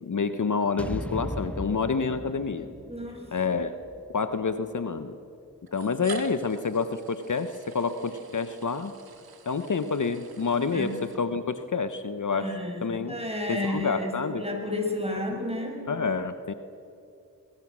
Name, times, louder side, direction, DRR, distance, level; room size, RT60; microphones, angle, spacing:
voice 1, 0.0-2.7 3.3-3.7 4.1-5.2 5.7-8.9 9.4-12.5 12.8-13.2 13.5-14.4 15.1-15.2 15.9-16.5, left 5 dB, 55° left, 10 dB, 1.1 m, -28 dB
sound 1, 0.8-5.0, equal, 5° left, 1.2 m, -38 dB
voice 2, 2.9-3.2 10.7-10.9 12.3-15.8, left 1 dB, 15° right, 2 dB, 6.2 m, -32 dB
sound 2, 3.4-3.5 4.6-4.7 5.7-11.7, right 5 dB, 75° right, 2.0 m, -47 dB
23.0 x 21.5 x 6.3 m, 2.6 s
cardioid pair, 50°, 37 cm